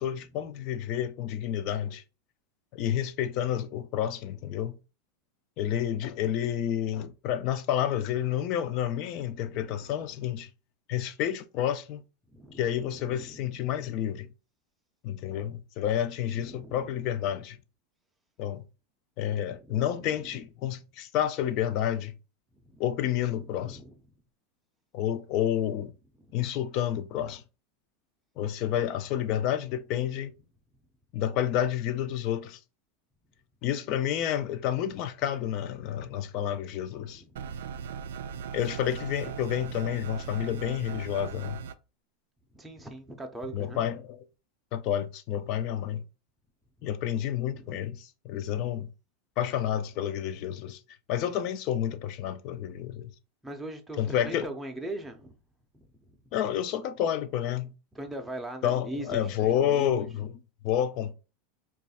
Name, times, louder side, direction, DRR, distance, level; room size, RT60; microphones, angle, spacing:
voice 1, 0.0-2.0 2.7-4.8 5.6-10.5 10.9-12.0 12.6-14.3 15.0-17.6 18.4-18.6 19.2-22.1 22.8-23.8 24.9-25.9 26.3-27.4 28.4-30.3 31.1-32.6 33.6-37.2 38.5-41.6 43.5-44.2 44.7-46.0 46.8-48.9 49.4-50.8 51.1-53.1 54.0-54.5 56.3-57.7 58.6-61.1, left 10 dB, 50° left, 0.4 m, -30 dB
voice 2, 9.4-9.7 12.3-13.4 16.3-17.0 19.6-20.4 22.7-22.9 23.4-23.9 26.2-26.3 37.0-37.4 42.5-43.8 47.5-47.6 53.4-55.4 55.7-55.9 57.9-60.1, right 1 dB, 5° right, 0.5 m, -41 dB
sound 1, 37.4-41.7, right 7 dB, 90° right, 0.3 m, -38 dB
3.0 x 2.3 x 4.2 m
supercardioid pair, 145°, 0 cm